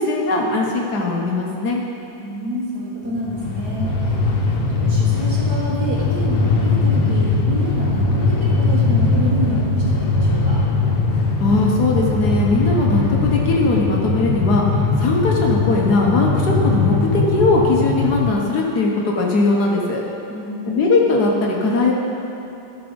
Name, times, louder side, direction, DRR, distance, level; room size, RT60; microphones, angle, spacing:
voice 1, 0.0-1.8 11.4-14.6 15.0-20.0 20.7-21.9, left 3 dB, 60° left, -2 dB, 1.5 m, -19 dB
voice 2, 2.2-10.6 20.3-20.8, right 1 dB, 55° right, -6 dB, 2.4 m, -28 dB
Train, 3.1-18.3, left 3 dB, 80° left, 1.7 m, -20 dB
14.5 x 5.1 x 5.1 m, 2.9 s
omnidirectional pair, 2.0 m